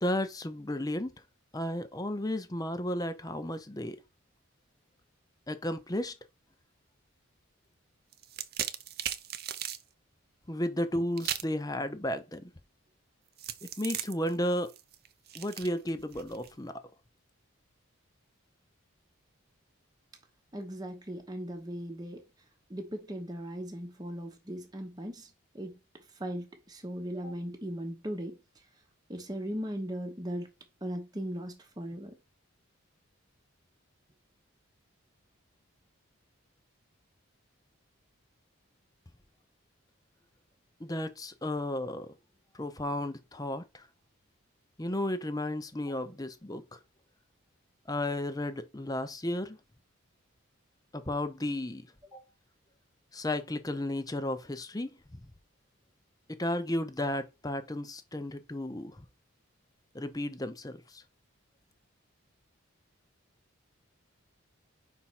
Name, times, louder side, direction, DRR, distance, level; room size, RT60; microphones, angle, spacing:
voice 1, 0.0-1.1 1.5-4.0 5.5-6.1 10.5-12.5 13.8-14.7 15.3-16.7 40.8-42.1 42.5-43.8 44.8-46.6 47.9-49.6 50.9-51.9 53.1-54.9 56.4-59.0 59.9-61.0, left 1 dB, 15° left, 0.7 m, -33 dB
sound 1, 8.1-9.8 11.2-11.6 13.4-16.5, right 10 dB, 45° right, 0.6 m, -37 dB
voice 2, 20.5-22.2 22.7-25.3 25.5-25.8 26.2-28.4 29.1-30.5 30.8-32.1 52.1-52.2, equal, 20° right, 1.0 m, -38 dB
5.6 x 4.6 x 4.2 m
head